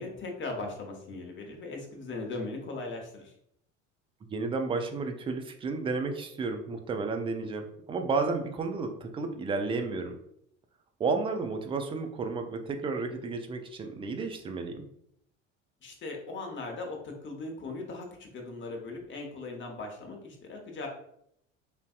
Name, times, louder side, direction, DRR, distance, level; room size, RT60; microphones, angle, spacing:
voice 1, 0.0-3.3 15.8-20.9, left 3 dB, 30° left, 2 dB, 0.9 m, -39 dB
voice 2, 4.3-10.2 11.0-14.9, right 4 dB, 15° right, 5 dB, 0.3 m, -32 dB
3.5 x 2.5 x 2.4 m, 0.74 s
figure-of-eight pair, 65°, 38 cm